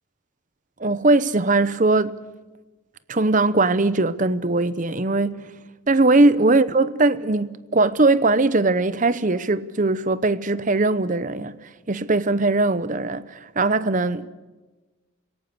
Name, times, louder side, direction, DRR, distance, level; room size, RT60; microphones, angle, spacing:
voice 1, 0.8-2.2 3.1-5.5 5.9-14.3, right 2 dB, 40° right, 0.8 m, -20 dB
26.0 x 17.5 x 8.5 m
head